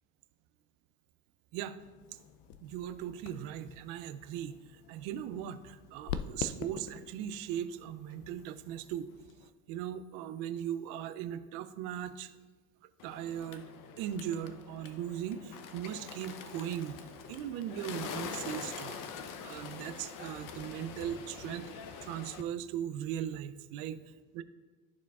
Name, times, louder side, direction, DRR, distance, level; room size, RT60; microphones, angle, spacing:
sound 1, 1.8-9.5, left 8 dB, 90° left, 0.5 m, -45 dB
voice 1, 2.6-9.1 9.7-12.3 13.0-13.7 14.0-17.0 17.3-19.0 19.4-24.0 24.4-24.5, right 10 dB, 85° right, 13 dB, 0.5 m, -39 dB
Bird, 13.0-22.4, left 6 dB, 55° left, 0.7 m, -44 dB
13.5 x 4.6 x 2.3 m, 1.3 s
supercardioid pair, 95°, 37 cm